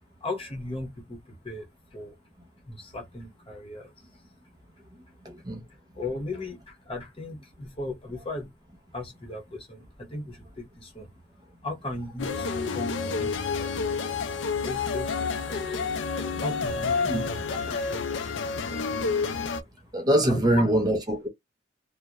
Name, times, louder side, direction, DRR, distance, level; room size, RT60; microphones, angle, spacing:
voice 1, 0.2-2.2 2.6-4.2 5.9-8.5 8.9-11.1 11.6-14.3 14.6-15.8 16.4-18.2 18.5-18.8 20.3-20.6, left 2 dB, 30° left, 0.8 m, -37 dB
voice 2, 5.2-5.6 17.0-17.3 19.9-21.3, right 1 dB, 20° right, 0.5 m, -24 dB
sound 1, 12.2-19.6, left 4 dB, 85° left, 0.4 m, -29 dB
2.3 x 2.1 x 2.8 m
head